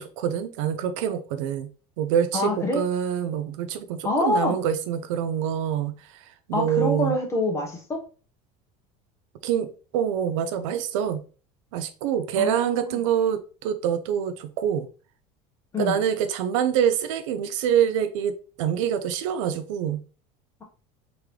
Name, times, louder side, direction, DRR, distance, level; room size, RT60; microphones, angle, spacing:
voice 1, 0.0-1.7 2.0-7.2 9.4-11.2 11.7-14.9 15.8-20.0, right 9 dB, 85° right, 10 dB, 0.5 m, -26 dB
voice 2, 2.3-2.8 4.0-4.6 6.5-8.0 12.4-13.0 15.7-16.0, left 2 dB, 20° left, 1 dB, 1.1 m, -26 dB
3.7 x 3.1 x 3.1 m, 0.37 s
supercardioid pair, 125°, 16 cm